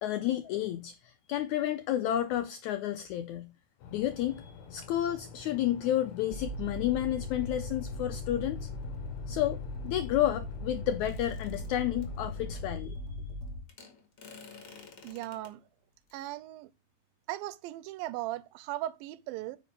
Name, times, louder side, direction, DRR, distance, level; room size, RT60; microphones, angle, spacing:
voice 1, 0.0-3.5 3.9-8.7 9.3-13.0, left 12 dB, 90° left, 1.6 m, -31 dB
sound 1, 3.8-12.8, left 7 dB, 65° left, 2.2 m, -48 dB
sound 2, 6.3-13.6, left 1 dB, 45° right, 1.4 m, -39 dB
sound 3, 11.0-12.1 13.7-15.5 16.1-16.3, left 5 dB, 40° left, 2.4 m, -51 dB
voice 2, 15.0-15.6 16.1-16.7 17.3-19.6, right 15 dB, 85° right, 2.4 m, -38 dB
9.2 x 5.4 x 5.2 m
omnidirectional pair, 4.1 m